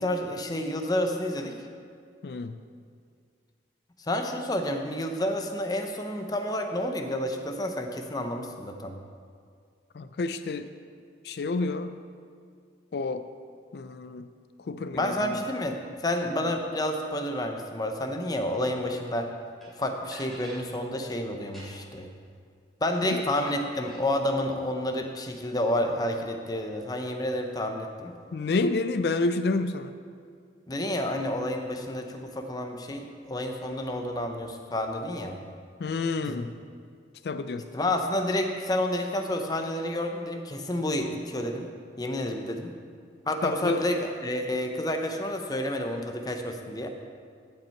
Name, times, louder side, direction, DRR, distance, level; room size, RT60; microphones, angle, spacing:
voice 1, 0.0-1.6 4.1-9.0 14.9-19.3 19.8-22.1 22.8-28.1 30.7-35.4 36.3-36.4 37.7-41.7 42.0-42.7 43.3-46.9, left 1 dB, 20° left, 4 dB, 0.6 m, -30 dB
voice 2, 2.2-2.6 9.9-10.7 11.2-12.0 12.9-13.3 13.7-14.3 14.6-15.4 16.4-16.5 23.0-23.2 28.3-30.0 35.8-36.5 37.2-37.7 43.4-43.8, left 3 dB, 60° left, 11 dB, 0.4 m, -29 dB
sound 1, 19.6-19.7 20.1-20.6 21.4-22.0 23.1-24.0, right 1 dB, ahead, 2.5 m, -47 dB
14.0 x 5.5 x 4.5 m, 2.2 s
head